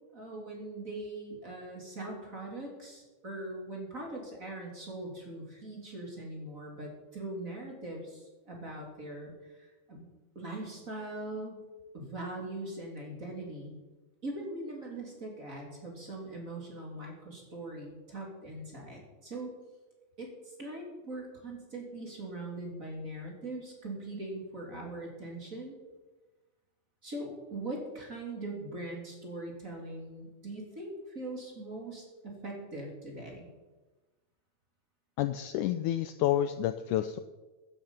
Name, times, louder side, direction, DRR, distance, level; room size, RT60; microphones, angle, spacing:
voice 1, 0.1-10.0 10.3-11.6 11.9-13.8 14.2-19.5 20.2-25.8 27.0-33.5, right 2 dB, 25° right, -1 dB, 3.2 m, -41 dB
voice 2, 35.2-37.2, left 12 dB, 85° left, 11 dB, 1.8 m, -29 dB
15.0 x 11.0 x 5.6 m, 1.2 s
omnidirectional pair, 4.2 m